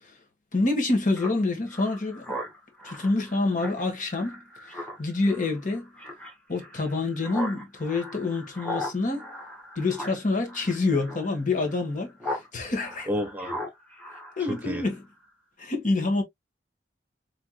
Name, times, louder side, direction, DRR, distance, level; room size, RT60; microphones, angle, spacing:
voice 1, 0.5-2.4 2.8-5.9 6.5-9.2 9.8-13.1 14.4-15.0 15.6-16.2, left 3 dB, 50° left, 1.4 m, -27 dB
Speech synthesizer, 1.1-12.5 12.8-15.0, left 1 dB, 10° left, 2.1 m, -39 dB
voice 2, 13.1-13.6 14.5-14.8, equal, 10° right, 1.1 m, -30 dB
4.5 x 3.5 x 2.2 m
head